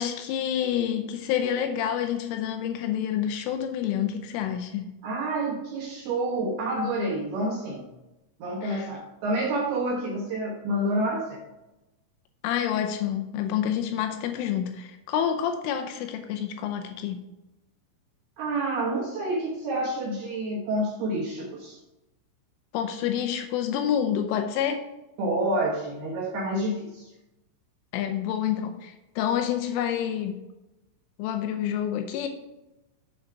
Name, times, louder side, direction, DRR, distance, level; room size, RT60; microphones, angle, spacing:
voice 1, 0.0-4.9 8.6-8.9 12.4-17.2 22.7-24.9 27.9-30.4 31.2-32.3, left 9 dB, 80° left, 6 dB, 3.0 m, -28 dB
voice 2, 5.0-7.8 8.4-11.4 18.4-21.8 25.2-27.0, right 1 dB, 70° right, -3 dB, 2.5 m, -28 dB
7.6 x 6.3 x 4.6 m, 0.97 s
omnidirectional pair, 6.0 m